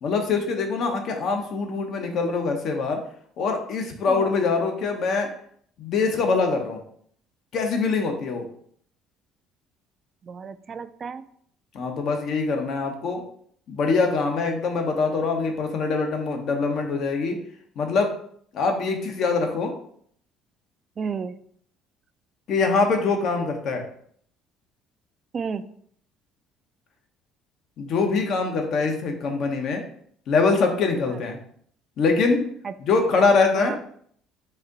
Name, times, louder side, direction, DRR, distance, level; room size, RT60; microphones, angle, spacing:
voice 1, 0.0-3.0 3.4-5.3 5.8-6.8 7.5-8.5 11.7-13.2 13.7-17.4 17.8-18.1 18.5-19.7 22.5-23.8 27.8-29.8 30.3-31.4 32.0-32.5 32.8-33.7, left 4 dB, 60° left, 4 dB, 0.8 m, -23 dB
voice 2, 10.2-11.2 21.0-21.4 25.3-25.7 31.1-31.2 32.6-32.7 33.5-33.8, right 6 dB, 40° right, 12 dB, 0.3 m, -32 dB
4.1 x 2.6 x 3.9 m, 0.63 s
supercardioid pair, 85°, 0 cm